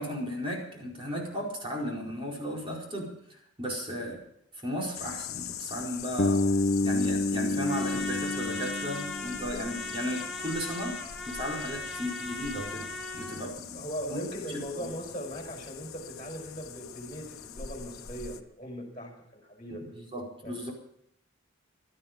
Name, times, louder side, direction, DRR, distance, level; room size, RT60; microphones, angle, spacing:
voice 1, 0.0-4.2 4.5-13.8 14.1-14.2 14.5-14.9 19.9-20.7, equal, 25° right, -2 dB, 4.6 m, -35 dB
sound 1, 4.9-18.4, left 10 dB, 85° left, 1.0 m, -42 dB
Bass guitar, 6.2-10.1, left 2 dB, 45° left, 0.7 m, -29 dB
Trumpet, 7.7-13.4, left 2 dB, 5° left, 2.7 m, -39 dB
voice 2, 13.7-19.9 20.4-20.7, equal, 20° left, 0 dB, 5.3 m, -39 dB
17.0 x 13.0 x 5.2 m, 0.74 s
head